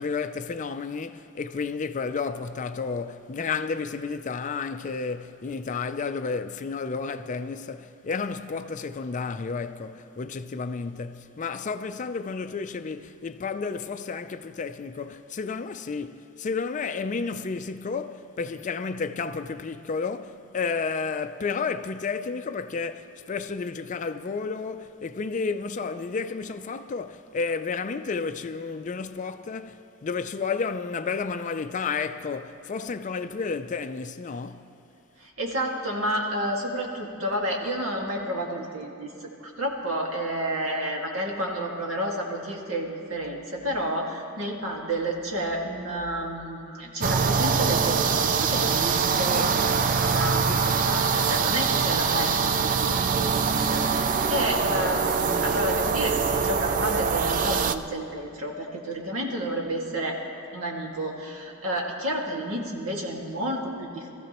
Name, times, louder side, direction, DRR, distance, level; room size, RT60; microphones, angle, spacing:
voice 1, 0.0-34.7 49.2-49.5 50.4-51.0, left 5 dB, 35° left, 0.4 m, -31 dB
voice 2, 35.2-39.1 39.4-60.2 60.5-64.1, right 1 dB, 70° right, 2.0 m, -30 dB
sound 1, 47.0-57.8, right 5 dB, 40° right, 0.4 m, -24 dB
21.5 x 14.5 x 3.0 m
head